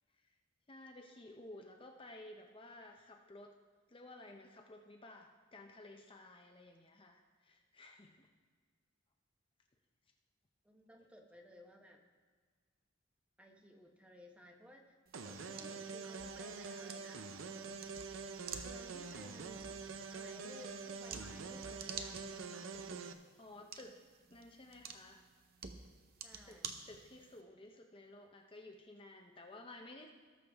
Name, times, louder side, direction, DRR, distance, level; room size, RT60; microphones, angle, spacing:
voice 1, 0.7-3.5 3.9-8.3 23.4-24.0 24.3-25.2 26.5-26.6 26.9-30.1, left 2 dB, 25° left, 2 dB, 0.7 m, -54 dB
voice 2, 10.6-12.0 13.4-17.3 18.6-19.7 20.1-22.8 26.2-26.9, equal, 5° right, 2 dB, 0.9 m, -58 dB
sound 1, 15.1-27.4, right 6 dB, 50° right, 0.7 m, -51 dB
sound 2, 15.1-23.1, right 4 dB, 90° right, 0.6 m, -46 dB
18.5 x 6.6 x 3.4 m, 1.5 s
head